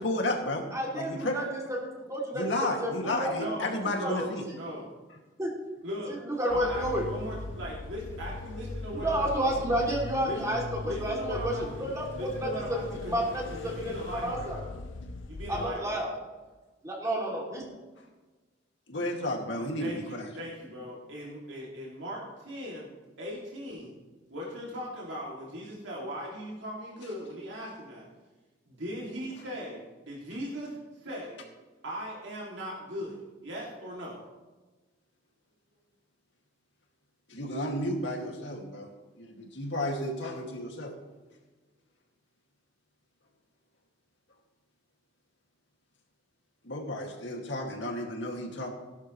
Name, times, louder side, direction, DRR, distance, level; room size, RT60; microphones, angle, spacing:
voice 1, 0.0-0.6 0.9-1.4 2.3-4.5 18.9-20.3 37.3-41.0 46.6-48.7, left 1 dB, 70° left, 1 dB, 2.3 m, -32 dB
voice 2, 0.7-1.6 1.9-3.3 4.0-4.1 5.4-5.5 6.2-7.0 8.9-12.8 13.1-14.6 15.5-16.1 16.8-17.6, right 1 dB, 15° right, -2 dB, 2.8 m, -31 dB
voice 3, 3.3-3.7 4.0-4.9 5.8-6.2 6.5-9.6 10.2-10.5 10.8-14.7 15.3-16.2 19.8-22.9 23.2-23.9 24.3-28.0 28.7-31.4 31.8-34.2, equal, 75° right, -4 dB, 2.7 m, -39 dB
sound 1, 6.5-15.7, left 2 dB, 85° left, 0.7 m, -39 dB
16.5 x 12.0 x 3.2 m, 1.2 s
head